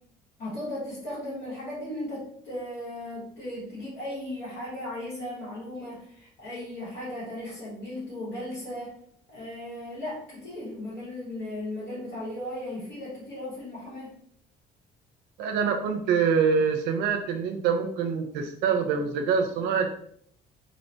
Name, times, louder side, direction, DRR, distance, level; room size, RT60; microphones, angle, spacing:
voice 1, 0.4-9.0 9.3-14.1, left 1 dB, 80° left, -9 dB, 1.2 m, -36 dB
voice 2, 15.4-19.9, right 6 dB, 80° right, 5 dB, 0.4 m, -25 dB
2.8 x 2.1 x 2.7 m, 0.65 s
cardioid pair, 110°, 17 cm